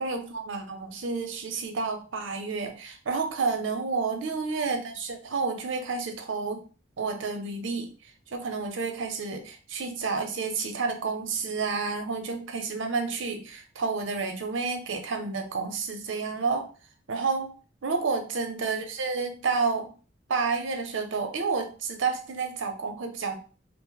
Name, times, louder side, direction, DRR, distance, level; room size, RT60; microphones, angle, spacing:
voice 1, 0.0-6.6 7.0-7.9 8.3-16.7 17.1-17.5 17.8-19.9 20.3-23.4, right 4 dB, 80° right, 6 dB, 0.6 m, -30 dB
2.5 x 2.0 x 3.9 m, 0.37 s
head